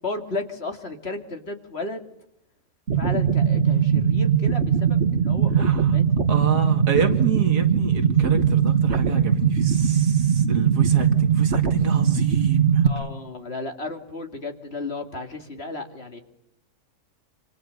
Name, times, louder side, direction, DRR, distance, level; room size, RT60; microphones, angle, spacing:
voice 1, 0.0-2.1 2.9-6.0 12.8-16.2, left 2 dB, 40° left, 6 dB, 2.7 m, -34 dB
sound 1, 2.9-12.9, right 7 dB, 45° right, 1.8 m, -20 dB
voice 2, 5.6-6.0 6.3-12.8, right 5 dB, 90° right, 7 dB, 2.6 m, -29 dB
27.0 x 26.5 x 6.6 m, 0.76 s
omnidirectional pair, 1.6 m